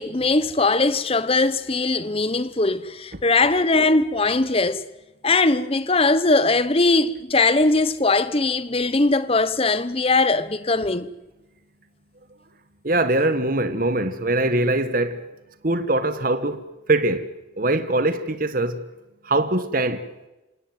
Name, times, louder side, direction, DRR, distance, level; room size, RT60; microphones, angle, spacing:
voice 1, 0.0-4.8 5.2-11.1, left 3 dB, 30° left, 1.0 m, -20 dB
voice 2, 12.8-15.2 15.6-17.3 17.6-18.8 19.2-20.1, right 2 dB, 45° right, 1.5 m, -22 dB
28.0 x 17.0 x 9.4 m
head